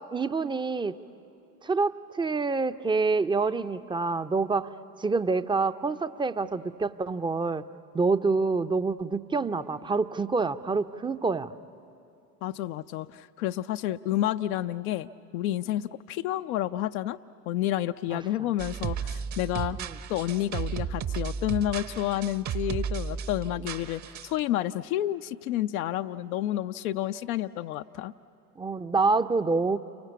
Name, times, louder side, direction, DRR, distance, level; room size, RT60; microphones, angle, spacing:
voice 1, 0.1-1.0 1.6-4.7 5.0-7.6 7.9-11.5 18.1-18.5 19.8-19.9 23.6-23.7 28.6-29.8, right 4 dB, 10° right, 11 dB, 0.6 m, -27 dB
voice 2, 12.4-15.1 15.3-17.2 17.5-19.8 20.1-28.1, left 13 dB, 60° left, 8 dB, 0.7 m, -30 dB
sound 1, 18.6-24.4, right 7 dB, 35° right, 1.0 m, -34 dB
29.5 x 23.5 x 8.3 m, 2.8 s
figure-of-eight pair, 65°, 49 cm